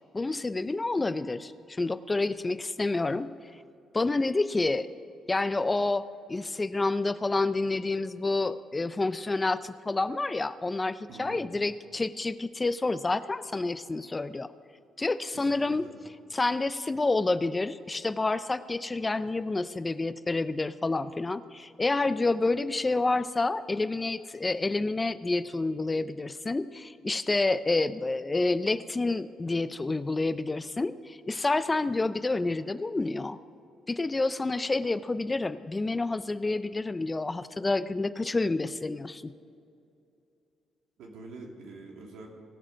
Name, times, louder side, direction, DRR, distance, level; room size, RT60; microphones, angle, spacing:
voice 1, 0.1-3.3 3.9-4.9 5.3-6.0 6.3-14.5 15.0-15.8 16.3-33.4 33.9-39.3, left 3 dB, 20° left, 14 dB, 0.4 m, -28 dB
voice 2, 11.1-11.5 15.3-16.0 41.0-42.3, right 2 dB, 85° right, 0 dB, 2.1 m, -46 dB
17.5 x 7.3 x 5.0 m, 2.6 s
cardioid pair, 90°, 0 cm